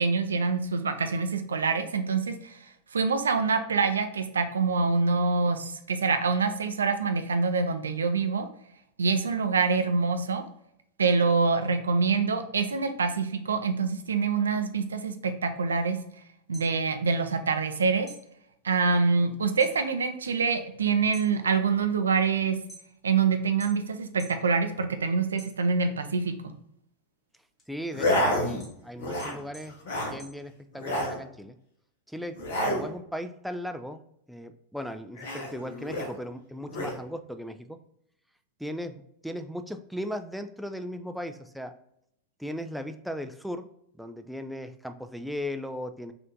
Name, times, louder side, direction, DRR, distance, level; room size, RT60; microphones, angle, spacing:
voice 1, 0.0-2.6 2.9-8.5 9.0-10.4 11.0-16.0 16.5-18.1 18.6-22.6 23.0-26.3, right 4 dB, 70° right, 7 dB, 0.5 m, -25 dB
sound 1, 16.3-17.7 18.0-19.8 20.2-20.6 21.0-23.2 23.6-24.5 24.8-26.0 26.5-31.0, right 2 dB, 20° left, 1.5 m, -51 dB
voice 2, 27.7-29.8 30.0-31.6 32.1-32.4 32.6-34.0 34.3-37.8 38.6-41.7 42.4-43.7 44.0-46.1, equal, ahead, 8 dB, 0.3 m, -37 dB
sound 2, 27.9-28.7 29.0-29.4 29.7-30.2 30.7-31.2 32.4-32.9 35.2-36.1 36.7-37.0, left 1 dB, 55° left, 1.0 m, -29 dB
4.2 x 2.6 x 3.6 m, 0.74 s
figure-of-eight pair, 90°, 0 cm